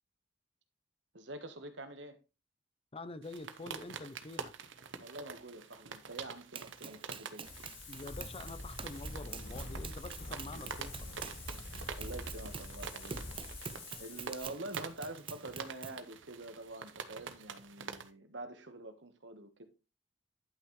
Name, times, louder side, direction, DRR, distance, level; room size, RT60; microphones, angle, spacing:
voice 1, 1.1-2.2 5.0-7.5 10.6-10.8 11.5-13.6 14.0-19.6, right 2 dB, 70° right, 1.3 m, -46 dB
voice 2, 2.9-4.5 7.9-11.1, left 3 dB, 30° left, 0.6 m, -46 dB
sound 1, 3.2-18.1, right 6 dB, 85° right, 0.9 m, -47 dB
Run, 6.5-16.0, right 6 dB, 30° right, 0.5 m, -47 dB
Wind, 7.4-14.4, left 2 dB, 80° left, 4.3 m, -45 dB
11.0 x 6.1 x 3.2 m
head